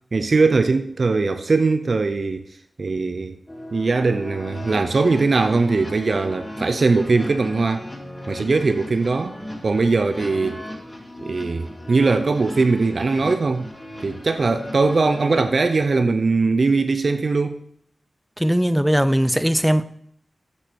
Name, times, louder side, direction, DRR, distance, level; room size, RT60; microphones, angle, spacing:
voice 1, 0.1-2.5 2.8-3.4 3.7-7.9 8.3-9.3 9.6-10.6 11.2-13.7 14.0-17.6, right 3 dB, 65° right, 0.7 m, -20 dB
sound 1, 3.5-15.5, left 1 dB, 20° left, 5.3 m, -37 dB
voice 2, 18.4-19.8, equal, 5° right, 0.7 m, -19 dB
9.9 x 7.3 x 6.4 m
cardioid pair, 50°, 0 cm